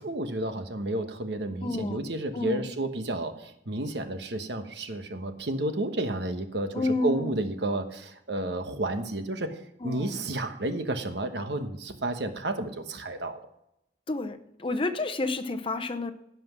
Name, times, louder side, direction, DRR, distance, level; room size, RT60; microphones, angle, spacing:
voice 1, 0.0-13.4, right 1 dB, 65° right, 7 dB, 1.2 m, -31 dB
voice 2, 1.6-2.0 2.3-2.7 6.7-7.4 9.8-10.2 14.1-16.1, left 2 dB, 30° left, 8 dB, 0.8 m, -30 dB
16.5 x 5.9 x 6.1 m, 0.79 s
head